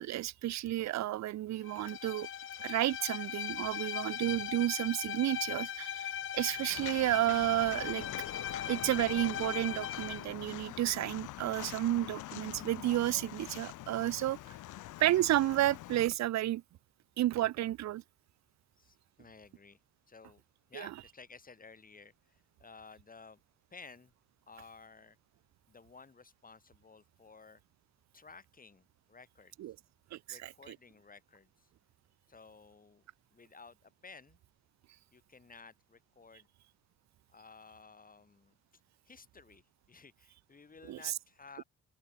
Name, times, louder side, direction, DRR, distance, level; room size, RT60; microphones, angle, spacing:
voice 1, 0.0-2.3 2.6-8.1 8.3-14.5 15.0-16.6 17.2-18.0 20.7-20.9 29.6-29.8 30.1-30.8 40.9-41.2, right 14 dB, 65° right, 0.7 m, -32 dB
Bowed string instrument, 1.6-10.3, left 9 dB, 45° left, 0.7 m, -39 dB
voice 2, 3.9-4.3 14.2-14.6 18.8-19.8 20.1-20.4 20.7-23.4 23.7-24.1 24.5-25.2 25.7-27.6 28.1-29.5 30.3-31.7 32.3-33.0 33.3-34.4 35.1-36.5 37.3-38.5 39.1-39.6 39.9-41.6, left 4 dB, 30° left, 3.5 m, -55 dB
sound 1, 6.4-12.2, left 11 dB, 70° left, 4.2 m, -49 dB
Walk footsteps, 6.7-16.0, left 16 dB, 90° left, 3.1 m, -46 dB
open air
cardioid pair, 90°, 30 cm